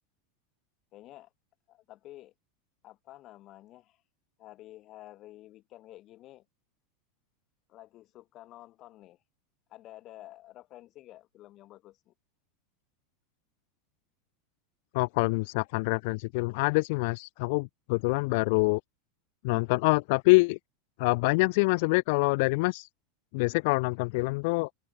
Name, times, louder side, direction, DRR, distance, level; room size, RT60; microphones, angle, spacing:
voice 1, 0.9-1.3 1.7-2.3 2.8-4.0 4.4-6.5 7.7-9.2 9.7-12.1, left 15 dB, 45° left, 6.3 m, -50 dB
voice 2, 14.9-18.8 19.4-20.6 21.0-22.9 23.3-24.7, left 27 dB, 65° left, 0.5 m, -25 dB
hypercardioid pair, 110°, 0 cm